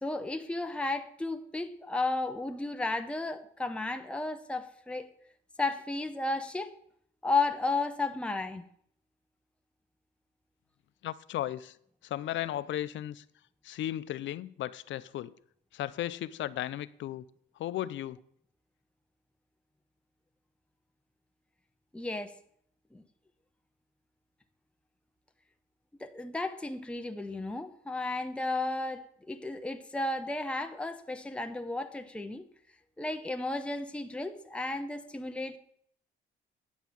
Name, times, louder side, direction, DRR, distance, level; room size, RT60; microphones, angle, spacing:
voice 1, 0.0-5.1 5.6-6.7 7.2-8.6 21.9-22.3 22.9-23.0 26.0-32.4 33.0-35.6, left 2 dB, 5° left, 0.8 m, -33 dB
voice 2, 11.0-11.8 12.0-13.2 13.6-15.3 15.7-17.3 17.6-18.2, left 12 dB, 70° left, 0.5 m, -35 dB
9.4 x 5.5 x 7.5 m
cardioid pair, 90°, 20 cm